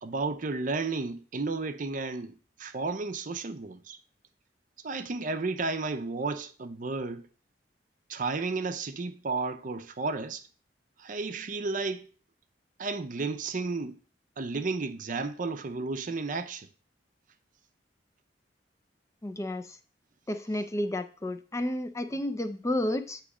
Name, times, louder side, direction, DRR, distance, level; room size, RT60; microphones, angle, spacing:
voice 1, 0.0-4.0 4.8-7.3 8.1-10.4 11.0-12.1 12.8-14.0 14.4-16.7, right 3 dB, 50° right, 0.6 m, -33 dB
voice 2, 19.2-19.8 20.3-23.2, left 1 dB, 15° left, 0.4 m, -31 dB
8.3 x 3.1 x 4.8 m
head